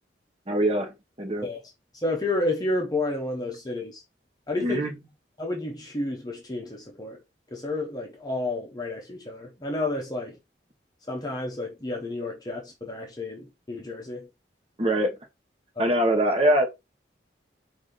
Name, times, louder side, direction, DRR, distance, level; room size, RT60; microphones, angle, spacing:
voice 1, 0.5-1.5 4.6-4.9 14.8-15.1 15.8-16.7, right 1 dB, 35° right, 1.0 m, -23 dB
voice 2, 2.0-4.0 4.5-4.9 5.4-7.2 7.5-10.4 11.1-14.3 15.8-15.9, left 2 dB, 20° left, 0.7 m, -31 dB
4.9 x 2.6 x 3.8 m
head